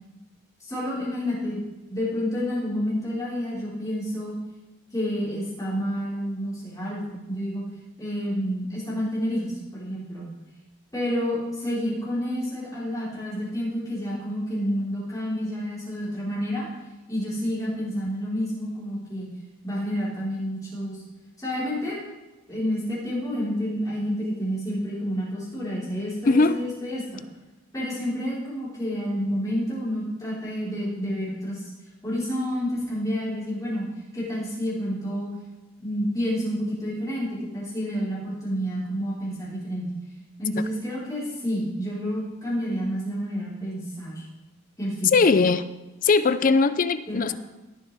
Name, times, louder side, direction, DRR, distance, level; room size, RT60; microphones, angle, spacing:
voice 1, 0.6-4.3 4.9-7.6 8.0-10.3 10.9-16.6 17.1-19.3 19.6-21.0 21.4-22.0 22.5-27.2 27.7-31.7 32.0-33.9 34.1-35.3 35.8-37.3 37.5-39.9 40.4-44.2 44.8-45.1 47.1-47.3, equal, 15° left, -8 dB, 4.4 m, -29 dB
voice 2, 26.3-26.6 45.1-45.6 46.0-47.3, left 4 dB, 40° left, 13 dB, 0.4 m, -20 dB
18.5 x 7.3 x 3.5 m, 1.1 s
head